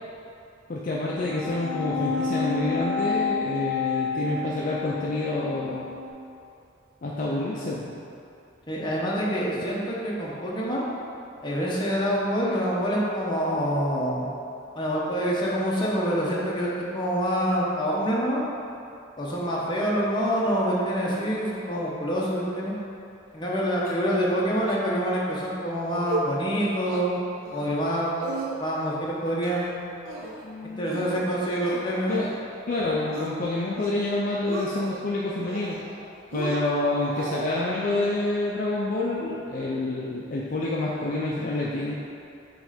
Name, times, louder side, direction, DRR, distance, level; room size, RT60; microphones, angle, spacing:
voice 1, 0.7-5.9 7.0-8.0 30.4-31.1 31.5-32.3 32.7-35.8 36.3-41.9, left 2 dB, 45° left, -5 dB, 0.5 m, -28 dB
sound 1, 1.1-6.1, left 4 dB, 10° right, 0.5 m, -30 dB
voice 2, 8.7-10.8 11.4-14.3 14.7-18.4 19.2-22.7 23.3-27.2 27.5-28.2 28.6-29.8 30.8-32.1, equal, 25° left, -5 dB, 0.9 m, -26 dB
sound 2, 23.9-24.4 24.7-24.8 25.1-25.4 25.8-26.3 26.6-27.0 27.4-27.9 28.2-28.9 29.3-29.7 30.1-30.4 30.9-32.4 32.7-33.3 33.7-34.1 34.3-35.0 35.4-36.0 36.3-37.6, right 2 dB, 85° right, 0.8 m, -35 dB
6.2 x 3.2 x 5.0 m, 2.7 s
head